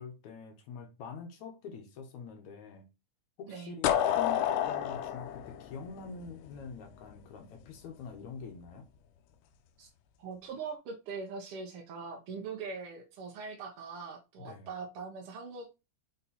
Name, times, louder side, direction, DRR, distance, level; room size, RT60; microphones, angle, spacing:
voice 1, 0.0-2.9 3.4-8.9 14.4-14.8, left 5 dB, 70° left, 2.3 m, -45 dB
sound 1, 3.8-6.7, left 10 dB, 85° left, 2.2 m, -29 dB
voice 2, 10.2-15.9, right 5 dB, 65° right, 1.5 m, -42 dB
5.6 x 4.1 x 4.2 m
omnidirectional pair, 3.6 m